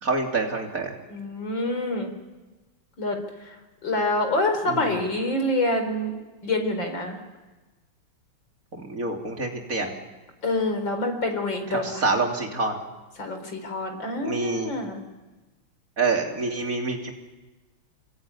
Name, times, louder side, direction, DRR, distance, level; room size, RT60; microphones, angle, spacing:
voice 1, 0.0-1.0 4.7-5.0 8.7-9.9 11.7-12.8 14.2-14.8 16.0-17.1, right 3 dB, 40° right, 2 dB, 3.5 m, -27 dB
voice 2, 1.1-2.1 3.0-3.6 3.8-6.1 6.4-7.2 10.4-12.0 13.2-15.0, left 2 dB, 60° left, 5 dB, 4.9 m, -26 dB
26.0 x 22.5 x 9.6 m, 1.2 s
omnidirectional pair, 2.3 m